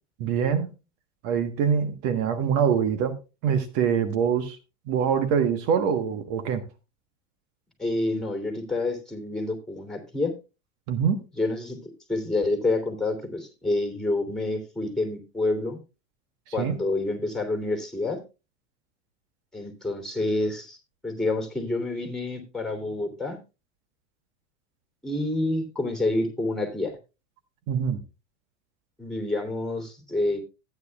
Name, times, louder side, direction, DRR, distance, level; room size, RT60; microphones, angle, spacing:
voice 1, 0.2-0.7 1.2-3.1 3.4-4.6 4.9-6.6 10.9-11.2 16.6-16.7 27.7-28.0, right 7 dB, 60° right, 1.4 m, -24 dB
voice 2, 7.8-10.3 11.4-11.8 12.1-15.8 16.5-18.2 19.5-20.8 21.0-23.4 25.0-26.9 29.0-30.4, left 2 dB, ahead, 3.1 m, -28 dB
14.5 x 9.4 x 2.3 m
hypercardioid pair, 105°, 38 cm